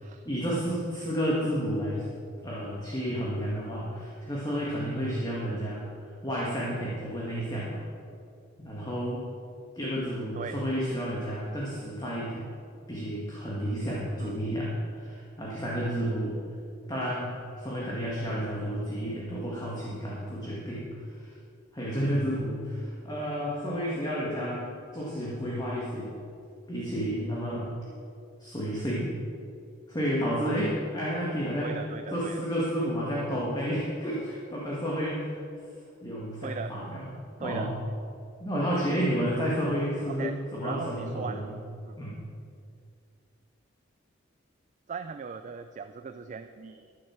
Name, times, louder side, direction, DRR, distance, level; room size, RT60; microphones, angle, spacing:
voice 1, 0.3-2.1 2.4-5.9 6.2-7.8 8.6-9.2 9.7-12.5 12.9-16.4 16.9-21.4 21.7-26.2 26.7-27.7 28.4-29.1 29.9-31.8 32.1-35.4 36.0-37.1 37.4-37.7 38.4-41.5 42.0-42.2, equal, 20° left, -6 dB, 1.8 m, -31 dB
voice 2, 31.6-32.4 36.4-36.8 37.4-37.7 40.1-40.4 40.6-41.5 41.9-42.0 44.9-46.8, right 5 dB, 40° right, 9 dB, 0.3 m, -38 dB
13.5 x 7.5 x 6.0 m, 2.4 s
head